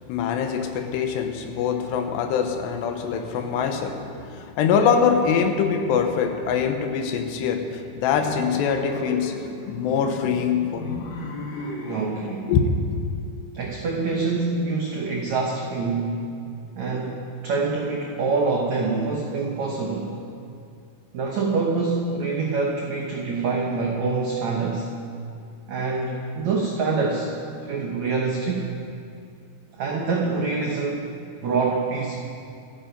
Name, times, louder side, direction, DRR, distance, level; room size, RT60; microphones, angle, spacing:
voice 1, 0.1-9.4 9.7-11.1 12.5-13.0, left 6 dB, 75° left, 6 dB, 3.1 m, -23 dB
sound 1, 8.1-12.1, left 2 dB, 55° left, 2.9 m, -35 dB
voice 2, 11.9-12.5 13.5-16.2 16.8-20.1 21.1-24.9 25.7-28.7 29.7-31.1 31.4-32.2, right 4 dB, 80° right, -1 dB, 1.6 m, -25 dB
26.5 x 8.9 x 5.3 m, 2.5 s
omnidirectional pair, 5.0 m